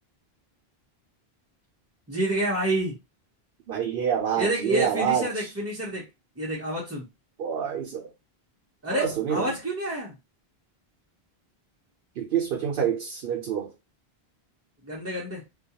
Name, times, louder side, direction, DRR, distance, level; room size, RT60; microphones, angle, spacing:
voice 1, 2.1-2.9 4.4-6.0 6.4-7.0 8.8-10.1 14.9-15.4, right 1 dB, 20° right, 0.5 m, -28 dB
voice 2, 3.7-5.5 7.4-8.1 8.9-9.5 12.2-13.7, right 8 dB, 70° right, 0.8 m, -27 dB
2.3 x 2.2 x 2.8 m
omnidirectional pair, 1.0 m